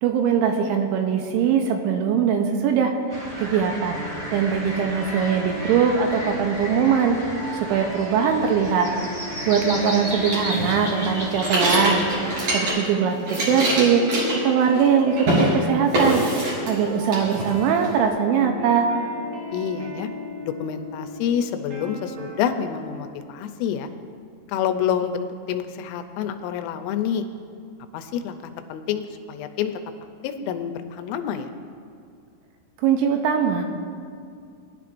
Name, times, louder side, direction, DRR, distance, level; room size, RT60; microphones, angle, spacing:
voice 1, 0.0-4.0 4.3-8.9 9.5-12.1 12.5-16.2 16.7-18.9 32.8-33.6, right 7 dB, 80° right, 4 dB, 2.9 m, -21 dB
sound 1, 3.1-12.7, equal, 15° right, 1.2 m, -34 dB
sound 2, 3.9-23.0, left 1 dB, 60° right, 4.0 m, -37 dB
sound 3, 10.3-12.9 13.2-14.9 15.2-15.5 15.9-16.8 17.1-17.9, right 1 dB, 45° right, 4.4 m, -24 dB
voice 2, 19.5-20.1 20.4-23.9 24.5-27.3 27.9-28.4 28.7-29.7 30.2-31.5, left 8 dB, 85° left, 7 dB, 3.2 m, -27 dB
20.5 x 11.0 x 2.5 m, 2.3 s
omnidirectional pair, 5.7 m